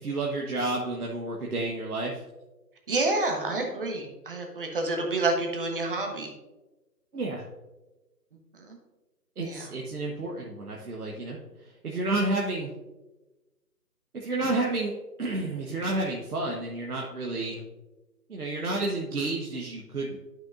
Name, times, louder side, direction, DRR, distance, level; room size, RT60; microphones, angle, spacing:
voice 1, 0.0-2.2 7.1-7.4 9.4-11.4 11.8-12.7 14.1-14.9 15.2-17.6 18.3-20.2, right 2 dB, 60° right, -1 dB, 1.3 m, -30 dB
voice 2, 2.9-6.3 8.5-8.8 9.4-9.7, right 2 dB, 35° right, 2 dB, 1.2 m, -29 dB
11.5 x 6.0 x 2.5 m, 1.1 s
figure-of-eight pair, 155°, 49 cm